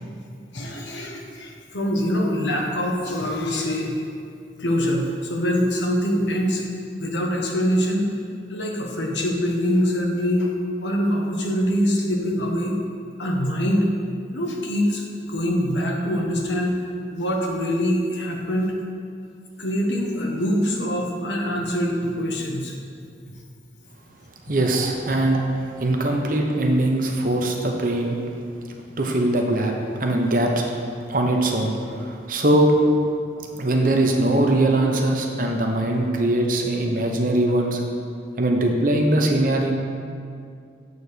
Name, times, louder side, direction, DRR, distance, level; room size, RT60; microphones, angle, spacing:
voice 1, 0.5-3.9 4.6-6.6 7.0-8.1 8.5-10.5 10.8-12.8 13.2-13.9 14.3-16.7 17.1-18.7 19.6-22.7, equal, 90° left, 0 dB, 1.2 m, -24 dB
voice 2, 24.5-25.4 25.8-28.2 29.0-29.7 30.0-30.5 31.1-32.7 33.6-37.8 38.4-39.7, right 1 dB, 50° right, 2 dB, 0.9 m, -21 dB
8.2 x 4.2 x 6.7 m, 2.3 s
head